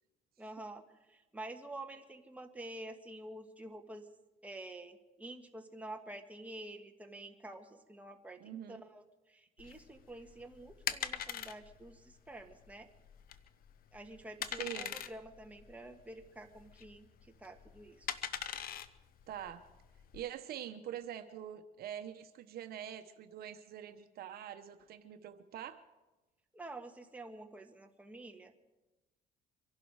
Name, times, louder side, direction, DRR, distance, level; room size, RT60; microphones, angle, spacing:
voice 1, 0.4-4.1 4.4-12.9 13.9-17.1 17.4-18.1 26.5-28.5, right 1 dB, 10° right, 4 dB, 1.5 m, -49 dB
voice 2, 8.4-8.8 14.6-15.0 19.3-19.6 20.1-25.8, right 10 dB, 65° right, 8 dB, 0.9 m, -44 dB
sound 1, 9.6-20.2, left 9 dB, 60° left, 0.8 m, -43 dB
24.5 x 11.5 x 4.8 m, 1.1 s
cardioid pair, 110°, 17 cm